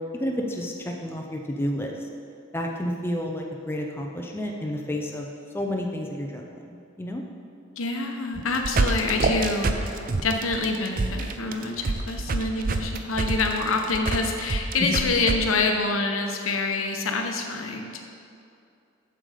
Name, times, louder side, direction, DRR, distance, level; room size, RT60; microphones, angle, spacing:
voice 1, 0.1-1.9 2.5-5.3 5.5-6.6 7.0-7.2 14.9-15.0, equal, 10° left, 0 dB, 0.5 m, -30 dB
voice 2, 7.8-18.1, left 3 dB, 80° left, 3 dB, 0.9 m, -26 dB
sound 1, 8.3-15.4, right 3 dB, 40° right, 0.4 m, -26 dB
7.4 x 6.8 x 5.0 m, 2.5 s
head